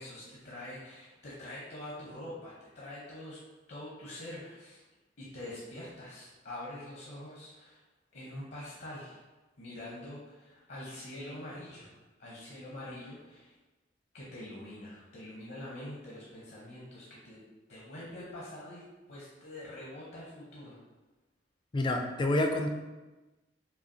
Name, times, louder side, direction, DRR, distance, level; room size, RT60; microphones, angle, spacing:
voice 1, 0.0-3.4 3.7-4.8 5.2-7.8 8.1-9.2 9.6-13.5 14.1-17.4 17.7-20.8, left 1 dB, 60° left, -6 dB, 0.8 m, -45 dB
voice 2, 21.7-22.7, left 1 dB, 25° left, 4 dB, 0.4 m, -28 dB
5.5 x 2.4 x 2.7 m, 1.2 s
head